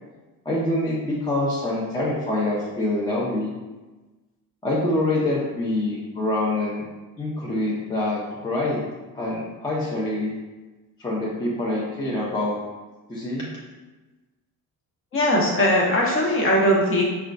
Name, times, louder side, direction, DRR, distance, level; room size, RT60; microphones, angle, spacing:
voice 1, 0.5-3.5 4.6-6.8 7.2-8.8 9.1-10.3 11.0-12.6 13.1-13.5, left 1 dB, 15° left, -6 dB, 0.4 m, -25 dB
voice 2, 15.1-17.0, equal, 35° left, -2 dB, 0.8 m, -20 dB
4.9 x 2.2 x 2.4 m, 1.2 s
cardioid pair, 155°, 35 cm